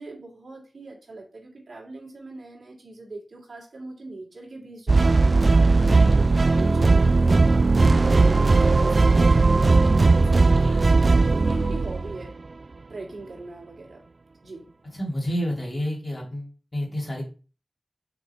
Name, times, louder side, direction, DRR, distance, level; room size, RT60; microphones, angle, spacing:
voice 1, 0.0-6.1 6.5-7.1 7.8-10.7 11.3-12.3 12.9-14.0 14.4-14.7, right 2 dB, 75° right, -1 dB, 2.7 m, -40 dB
sound 1, 4.9-12.2, right 3 dB, 50° right, 0.3 m, -18 dB
voice 2, 5.7-6.2 10.5-11.0 14.9-17.2, equal, 35° left, -2 dB, 2.9 m, -30 dB
6.1 x 4.8 x 4.4 m, 0.35 s
wide cardioid pair, 75°, 0 cm